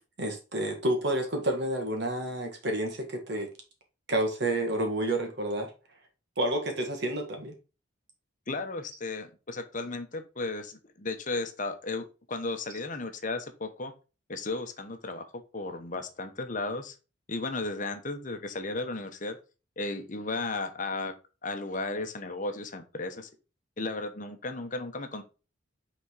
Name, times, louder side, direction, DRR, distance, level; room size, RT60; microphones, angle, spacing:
voice 1, 0.2-3.5 4.1-5.7 6.4-7.5, right 1 dB, 60° right, 1.9 m, -29 dB
voice 2, 8.5-13.9 14.3-17.0 17.3-19.4 19.8-21.1 21.4-23.3 23.8-25.2, left 3 dB, 40° left, 1.0 m, -34 dB
6.2 x 4.2 x 4.8 m
head